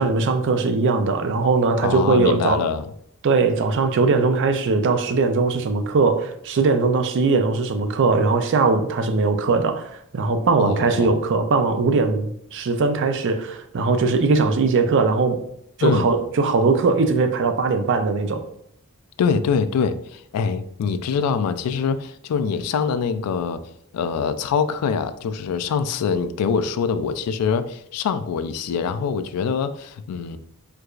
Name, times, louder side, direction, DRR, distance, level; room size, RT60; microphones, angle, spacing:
voice 1, 0.0-2.6 3.2-15.4 15.8-18.4, right 4 dB, 55° right, 0.4 m, -20 dB
voice 2, 1.8-2.8 10.6-11.1 15.8-16.1 19.2-23.6 23.9-30.4, left 6 dB, 90° left, 0.3 m, -24 dB
4.5 x 2.3 x 2.4 m
head